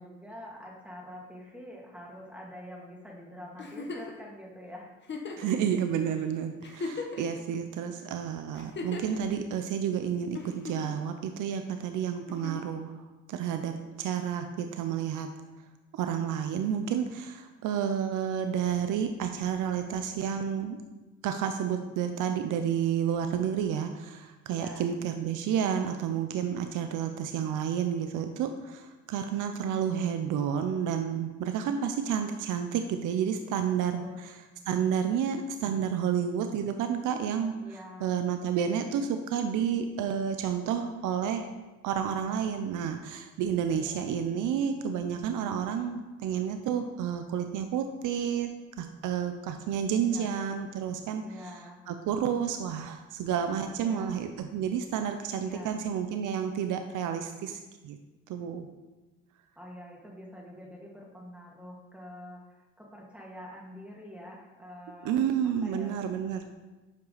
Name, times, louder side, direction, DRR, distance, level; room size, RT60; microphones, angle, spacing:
voice 1, 0.0-4.9 5.2-5.8 24.5-24.9 34.0-34.3 37.6-38.1 43.8-44.1 50.0-50.5 51.2-51.8 53.8-54.2 55.4-55.8 59.6-66.0, equal, 5° right, -3 dB, 2.2 m, -46 dB
Giggle, 3.6-4.2 5.0-5.5 6.2-6.3 6.6-7.4 8.5-9.2 10.4-11.0 12.3-12.7 14.2-14.3, left 4 dB, 35° left, 1.2 m, -38 dB
voice 2, 5.4-15.3 15.9-20.8 21.2-34.4 34.7-37.5 38.0-41.5 41.8-48.5 48.8-58.0 58.3-58.7 65.0-66.5, right 8 dB, 85° right, 7 dB, 0.6 m, -30 dB
9.2 x 5.6 x 4.0 m, 1.2 s
cardioid pair, 90°, 30 cm